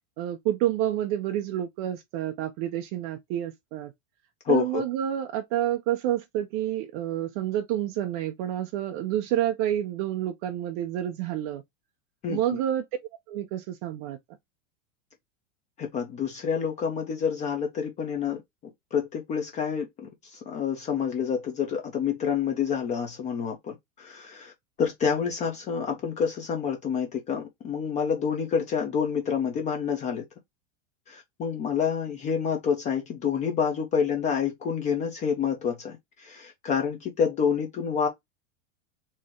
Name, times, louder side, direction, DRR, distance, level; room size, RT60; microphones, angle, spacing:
voice 1, 0.2-3.9 4.5-11.6 12.3-12.9 13.3-14.2, right 12 dB, 30° right, 0.4 m, -29 dB
voice 2, 4.4-4.8 12.2-12.6 15.8-18.4 18.9-24.5 24.8-30.2 31.1-38.1, left 7 dB, 20° left, 0.6 m, -28 dB
4.3 x 3.3 x 3.0 m
supercardioid pair, 165°, 39 cm